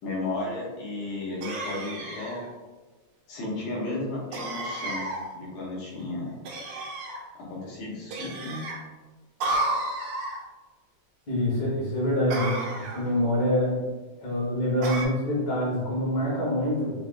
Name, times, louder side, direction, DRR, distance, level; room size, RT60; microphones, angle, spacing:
voice 1, 0.0-2.4 3.3-5.1 5.3-6.4 7.4-8.7, left 2 dB, 85° left, -4 dB, 2.4 m, -34 dB
sound 1, 1.4-2.5 4.3-5.3 6.5-7.2 8.1-8.8 9.4-10.4 12.3-13.1 14.8-15.1, right 2 dB, 75° right, 1.9 m, -32 dB
voice 2, 11.3-13.8 14.2-16.9, left 1 dB, 45° left, -7 dB, 1.4 m, -26 dB
5.6 x 2.3 x 2.5 m, 1.3 s
omnidirectional pair, 3.4 m